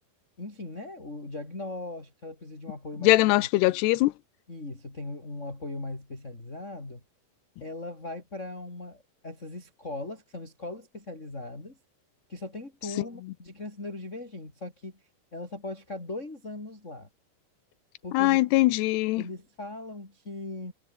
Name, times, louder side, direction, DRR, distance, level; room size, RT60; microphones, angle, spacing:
voice 1, 0.4-3.2 4.5-7.0 7.6-11.8 12.3-15.0 15.3-17.1 18.0-18.4 19.2-20.7, left 2 dB, 15° left, 4.7 m, -39 dB
voice 2, 3.0-4.1 18.1-19.2, left 19 dB, 85° left, 2.8 m, -21 dB
omnidirectional pair, 4.9 m